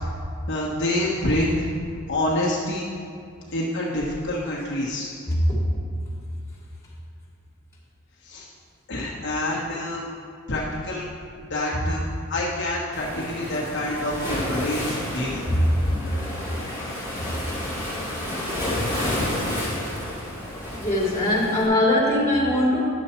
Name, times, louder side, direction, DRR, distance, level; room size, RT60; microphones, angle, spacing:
voice 1, 0.5-1.7 2.1-2.9 3.5-5.1 8.2-8.5 8.9-10.0 10.5-11.1 11.5-15.4, left 1 dB, 55° left, -5 dB, 1.2 m, -27 dB
voice 2, 5.3-5.6 15.5-15.7 20.7-22.8, left 1 dB, 15° left, -6 dB, 2.5 m, -21 dB
Waves surf, 12.9-21.7, left 1 dB, 15° right, 2.4 m, -30 dB
10.5 x 6.9 x 4.3 m, 2.3 s
head